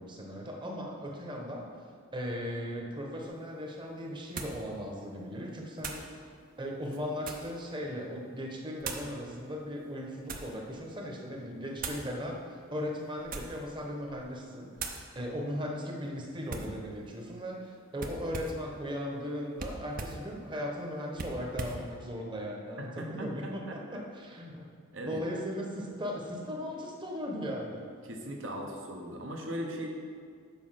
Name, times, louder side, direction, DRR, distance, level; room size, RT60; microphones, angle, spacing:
voice 1, 0.0-1.7 2.1-6.0 6.6-14.7 15.1-23.8 24.1-24.7 25.0-27.9, equal, 25° right, 0 dB, 1.0 m, -37 dB
sound 1, 3.2-3.3 4.4-4.6 5.8-6.1 6.8-7.6 8.8-9.1 9.9-10.6 11.8-12.1 13.2-13.7 14.1-14.3 14.8-15.1 16.5-16.8 18.0-18.7 19.6-20.2 21.1-21.8, right 4 dB, 40° right, 0.7 m, -40 dB
voice 2, 22.8-24.0 24.9-25.2 28.1-29.9, equal, 65° right, 1 dB, 1.1 m, -39 dB
7.2 x 5.3 x 5.8 m, 2.1 s
head